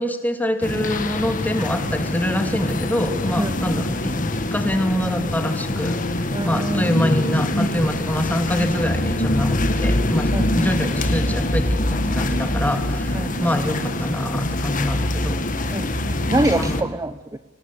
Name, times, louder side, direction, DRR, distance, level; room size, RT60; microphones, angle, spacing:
voice 1, 0.0-4.1 4.5-15.4 16.6-16.8, left 1 dB, 10° left, 7 dB, 2.6 m, -25 dB
sound 1, 0.6-16.8, left 1 dB, 45° left, 1.9 m, -24 dB
voice 2, 3.4-3.7 6.3-7.1 10.3-10.7 13.1-13.5 15.7-17.4, right 1 dB, 15° right, 11 dB, 0.7 m, -26 dB
25.5 x 18.5 x 8.5 m, 1.3 s
head